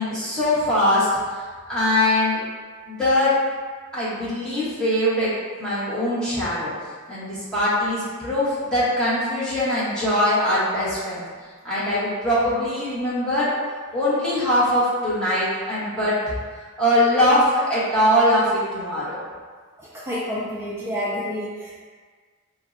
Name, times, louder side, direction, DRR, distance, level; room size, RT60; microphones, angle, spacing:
voice 1, 0.0-1.4 1.7-2.4 2.8-3.3 3.9-5.3 5.6-6.7 7.1-11.2 11.6-13.6 13.9-16.2 16.8-19.2, left 1 dB, 5° left, -12 dB, 1.0 m, -22 dB
voice 2, 19.8-21.8, equal, 10° right, -8 dB, 0.3 m, -29 dB
4.2 x 2.1 x 2.5 m, 1.6 s
head